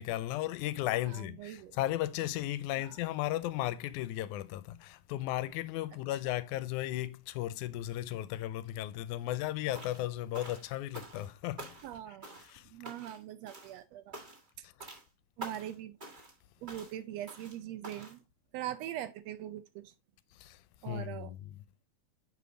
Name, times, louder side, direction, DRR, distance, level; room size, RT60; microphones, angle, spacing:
voice 1, 0.0-11.8 12.4-12.7 14.6-14.9 20.3-21.6, left 14 dB, 85° left, 2.0 m, -35 dB
voice 2, 1.1-1.8 2.8-3.0 11.8-12.4 12.7-14.2 15.4-16.0 16.6-18.2 18.5-19.9 20.8-21.3, right 12 dB, 80° right, 1.5 m, -42 dB
sound 1, 9.7-10.1 10.3-11.3 11.6-12.0 12.2-12.6 12.9-13.2 13.5-13.8 14.1-14.5 14.8-15.1 15.4-15.7 16.0-16.4 16.7-17.0 17.3-17.6 17.8-18.2, right 2 dB, 20° right, 1.3 m, -47 dB
6.8 x 5.1 x 3.7 m
omnidirectional pair, 3.4 m